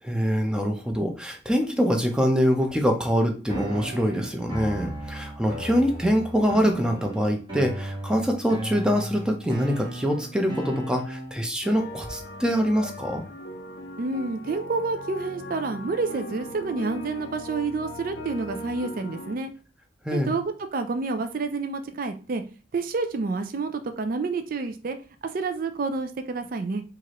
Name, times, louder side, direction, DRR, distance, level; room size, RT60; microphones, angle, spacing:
voice 1, 0.0-13.2 20.0-20.4, equal, 5° right, 3 dB, 0.6 m, -24 dB
sound 1, 3.5-11.5, right 1 dB, 25° right, 1.2 m, -36 dB
sound 2, 11.6-19.4, left 1 dB, 65° left, 0.6 m, -39 dB
voice 2, 14.0-19.5 20.1-22.4 22.7-25.0 25.3-26.8, right 3 dB, 50° right, 8 dB, 0.4 m, -29 dB
4.6 x 2.5 x 3.0 m, 0.35 s
head